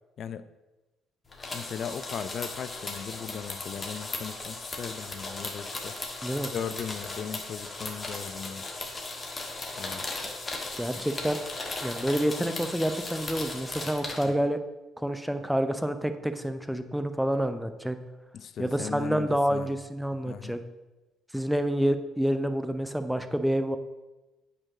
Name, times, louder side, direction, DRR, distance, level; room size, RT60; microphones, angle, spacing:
sound 1, 1.3-14.2, left 2 dB, 25° left, 1.5 m, -37 dB
voice 1, 1.5-6.0 6.5-8.7 9.8-10.1 14.4-14.5 18.3-19.7 20.2-20.5, left 7 dB, 50° left, 13 dB, 0.4 m, -38 dB
voice 2, 6.2-6.5 10.8-11.4 11.8-14.6 15.0-18.0 18.6-20.6 21.3-23.8, equal, ahead, 9 dB, 0.7 m, -28 dB
8.7 x 4.5 x 5.0 m, 1.1 s
figure-of-eight pair, 45°, 0 cm